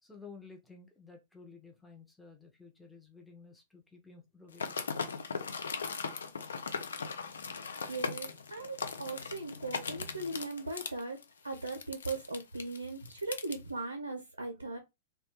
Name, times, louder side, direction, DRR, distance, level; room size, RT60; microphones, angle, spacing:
voice 1, 0.0-4.6, left 4 dB, 5° left, 0.5 m, -53 dB
sound 1, 4.5-13.6, left 5 dB, 65° left, 0.3 m, -39 dB
voice 2, 7.9-11.2 11.4-14.8, right 2 dB, 80° right, 0.4 m, -38 dB
2.2 x 2.1 x 2.9 m
figure-of-eight pair, 100°, 0 cm